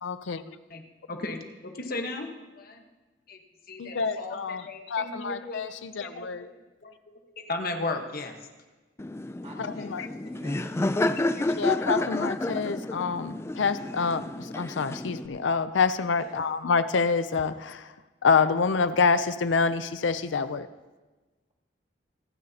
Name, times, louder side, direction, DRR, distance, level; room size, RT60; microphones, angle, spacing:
voice 1, 0.0-0.6 3.8-6.5 9.6-10.1 11.6-17.9 18.2-20.7, left 5 dB, 75° left, 13 dB, 0.5 m, -27 dB
voice 2, 0.7-2.8 3.3-3.4 3.7-5.7 6.0-6.5 6.8-6.9 7.2-8.5 11.0-11.8, left 2 dB, 55° left, 4 dB, 1.3 m, -36 dB
Laughter, 9.0-15.3, left 2 dB, 15° left, 0.4 m, -30 dB
voice 3, 9.4-11.0 16.2-16.3, right 1 dB, 35° right, -2 dB, 2.3 m, -48 dB
26.0 x 10.5 x 2.9 m, 1.2 s
head